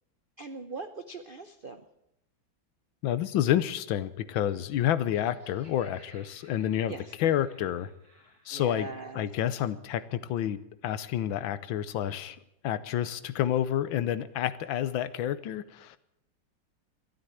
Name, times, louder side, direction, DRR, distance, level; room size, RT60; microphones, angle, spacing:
voice 1, 0.4-1.8 6.9-7.1 8.5-9.3, right 3 dB, 80° right, 9 dB, 0.4 m, -40 dB
voice 2, 3.0-7.9 8.5-8.9 9.1-12.4 12.6-16.0, left 11 dB, 85° left, 15 dB, 1.5 m, -29 dB
Laughter, 4.9-8.6, right 1 dB, 60° right, 7.1 m, -59 dB
13.0 x 12.0 x 9.1 m, 0.82 s
omnidirectional pair, 2.1 m